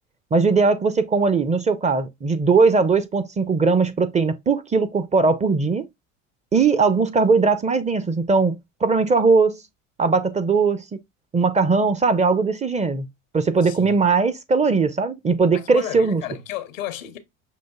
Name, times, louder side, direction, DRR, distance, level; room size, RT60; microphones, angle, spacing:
voice 1, 0.3-5.8 6.5-9.6 10.0-11.0 11.3-13.1 13.3-16.2, right 4 dB, 20° right, 0.5 m, -19 dB
voice 2, 13.6-14.0 15.5-17.2, left 10 dB, 90° left, 0.7 m, -33 dB
6.1 x 2.5 x 2.2 m
hypercardioid pair, 80°, 38 cm